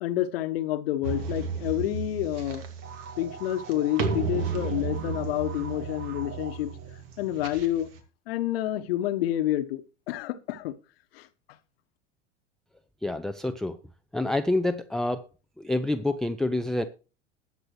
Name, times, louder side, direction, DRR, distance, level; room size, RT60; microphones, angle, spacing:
voice 1, 0.0-2.6 3.2-6.7 7.2-7.9 8.3-9.8 10.1-10.7 11.1-11.3, left 13 dB, 55° left, 1.2 m, -28 dB
sound 1, 1.0-8.0, right 5 dB, 55° right, 2.3 m, -34 dB
sound 2, 2.8-7.5, right 6 dB, 30° right, 1.6 m, -43 dB
voice 2, 13.0-13.8 14.1-15.2 15.6-16.8, left 2 dB, ahead, 0.5 m, -27 dB
20.5 x 7.3 x 3.2 m
figure-of-eight pair, 80°, 35 cm